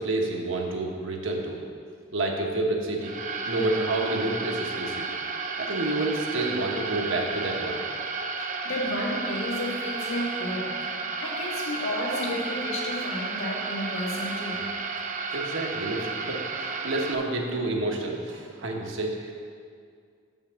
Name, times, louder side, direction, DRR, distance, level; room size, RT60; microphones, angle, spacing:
voice 1, 0.0-1.6 2.1-3.1 3.4-5.1 5.6-7.8 15.3-19.3, right 2 dB, 70° right, 1 dB, 1.1 m, -29 dB
sound 1, 3.0-17.1, right 4 dB, 40° right, 0.5 m, -32 dB
voice 2, 8.4-14.6, left 1 dB, 85° left, -4 dB, 1.9 m, -32 dB
6.5 x 5.7 x 6.9 m, 2.2 s
head